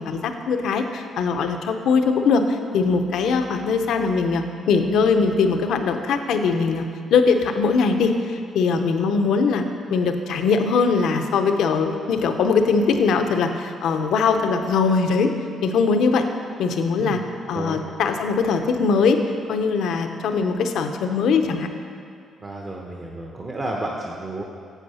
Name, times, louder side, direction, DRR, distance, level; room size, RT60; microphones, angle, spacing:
voice 1, 0.0-6.8 7.1-15.3 15.6-16.3 16.6-17.2 17.5-19.2 19.5-21.7, left 5 dB, 80° left, 6 dB, 0.7 m, -21 dB
voice 2, 22.4-24.4, right 2 dB, 30° right, -1 dB, 0.9 m, -31 dB
8.3 x 7.7 x 5.6 m, 2.3 s
cardioid pair, 90°, 0 cm